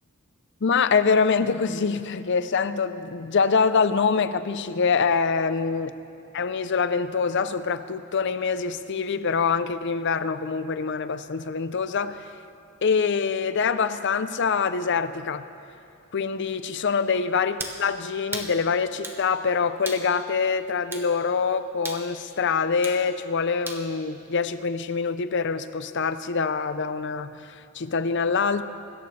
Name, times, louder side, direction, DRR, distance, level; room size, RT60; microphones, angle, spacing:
voice 1, 0.6-5.9 6.3-12.3 12.8-15.5 16.1-28.6, left 5 dB, 55° left, 12 dB, 0.6 m, -25 dB
sound 1, 17.6-17.8 18.3-18.5 19.0-19.2 19.9-20.1 20.9-21.1 21.9-22.1 22.8-23.0 23.7-23.9, right 2 dB, 10° right, 1.0 m, -34 dB
24.5 x 14.0 x 3.3 m, 2.6 s
head